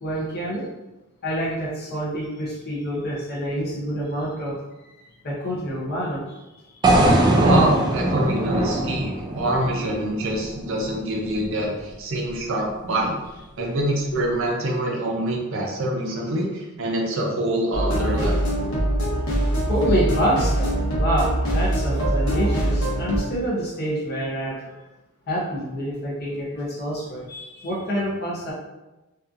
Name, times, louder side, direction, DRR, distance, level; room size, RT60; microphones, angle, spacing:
voice 1, 0.0-0.7 1.2-4.6 5.0-6.4 6.8-7.5 13.6-13.7 14.1-14.2 19.7-24.8 25.3-28.5, equal, 50° left, -5 dB, 0.6 m, -27 dB
sound 1, 6.8-11.0, right 1 dB, 20° right, 0.3 m, -21 dB
voice 2, 7.4-13.1 13.6-18.5, right 1 dB, 65° right, -1 dB, 0.6 m, -25 dB
sound 2, 17.7-23.2, right 1 dB, 80° left, 1.0 m, -23 dB
2.7 x 2.3 x 2.4 m, 1.0 s
head